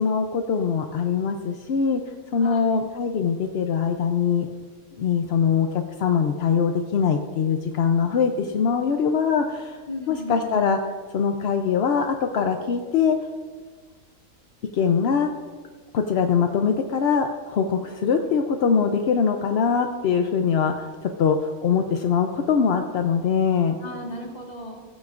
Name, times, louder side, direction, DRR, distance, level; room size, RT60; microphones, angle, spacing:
voice 1, 0.0-2.0 2.3-4.5 5.0-9.8 10.1-10.8 11.1-13.2 14.7-15.3 15.9-20.9 21.2-23.7, left 6 dB, 60° left, 5 dB, 0.7 m, -22 dB
voice 2, 2.4-2.8 9.9-10.5 23.8-24.8, left 1 dB, 30° left, -1 dB, 1.8 m, -35 dB
16.0 x 9.4 x 2.5 m, 1.5 s
omnidirectional pair, 1.6 m